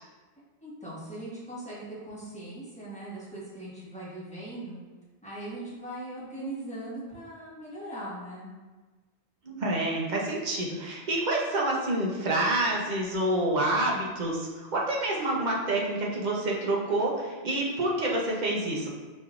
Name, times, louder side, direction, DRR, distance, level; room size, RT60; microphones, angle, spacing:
voice 1, 0.6-4.8 5.2-8.5, right 1 dB, 5° left, -9 dB, 1.2 m, -40 dB
voice 2, 9.4-18.9, right 1 dB, 45° right, -3 dB, 0.8 m, -28 dB
5.4 x 3.0 x 2.4 m, 1.3 s
omnidirectional pair, 1.1 m